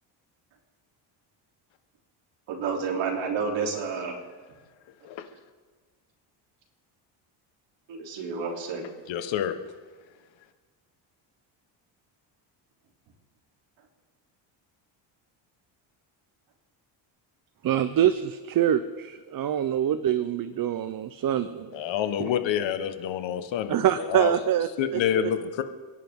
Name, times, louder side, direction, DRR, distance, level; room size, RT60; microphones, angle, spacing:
voice 1, 2.5-4.2 7.9-8.8, right 5 dB, 70° right, 0 dB, 3.6 m, -30 dB
voice 2, 9.1-9.6 21.7-24.3 24.8-25.6, left 9 dB, 70° left, 8 dB, 1.5 m, -28 dB
voice 3, 17.6-21.7 22.2-22.3 23.7-25.3, right 10 dB, 45° right, 12 dB, 0.8 m, -25 dB
29.0 x 11.0 x 3.8 m, 1.4 s
cardioid pair, 95°, 47 cm